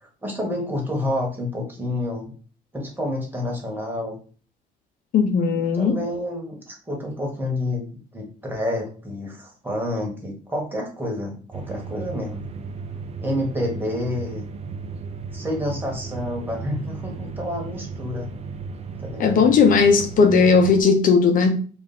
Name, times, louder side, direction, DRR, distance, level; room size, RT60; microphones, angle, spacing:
voice 1, 0.0-2.3 2.7-4.2 5.5-7.8 8.1-12.4 13.2-14.5 15.3-18.3 19.0-19.5, left 1 dB, 10° right, 0 dB, 1.5 m, -29 dB
voice 2, 5.1-6.0 19.2-21.6, left 5 dB, 55° left, 4 dB, 0.6 m, -17 dB
sound 1, 11.5-20.8, right 5 dB, 40° right, 0.5 m, -35 dB
3.5 x 2.5 x 4.1 m, 0.41 s
cardioid pair, 110°, 17 cm